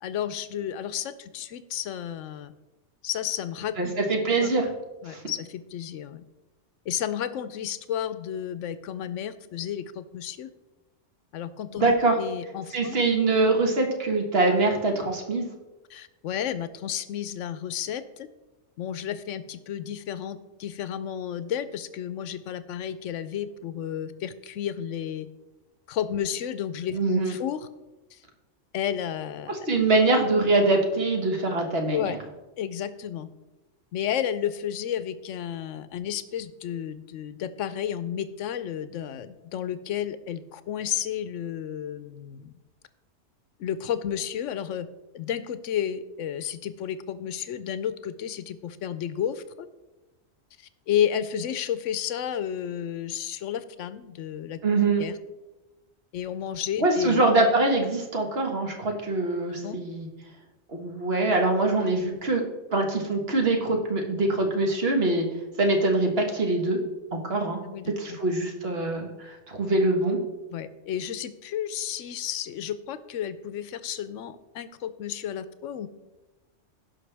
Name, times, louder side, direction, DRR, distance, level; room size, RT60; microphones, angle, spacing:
voice 1, 0.0-2.5 3.0-4.0 4.4-4.5 5.0-6.2 6.9-10.5 11.3-13.0 15.9-18.3 18.8-25.3 25.9-27.7 28.1-28.2 28.7-29.5 31.9-32.2 32.6-33.3 33.9-42.5 43.6-44.9 45.1-49.7 50.9-54.6 55.0-55.2 56.1-57.3 59.6-59.8 67.7-68.2 70.5-75.9, left 9 dB, 75° left, 13 dB, 1.0 m, -32 dB
voice 2, 3.8-4.7 5.1-5.2 11.8-12.2 12.7-15.5 26.9-27.3 29.5-32.2 54.6-55.0 56.8-60.1 60.7-62.4 62.7-65.2 65.6-66.8 67.1-67.6 68.0-70.2, right 2 dB, 50° right, 2 dB, 1.6 m, -24 dB
16.0 x 5.7 x 3.4 m, 1.1 s
omnidirectional pair, 1.3 m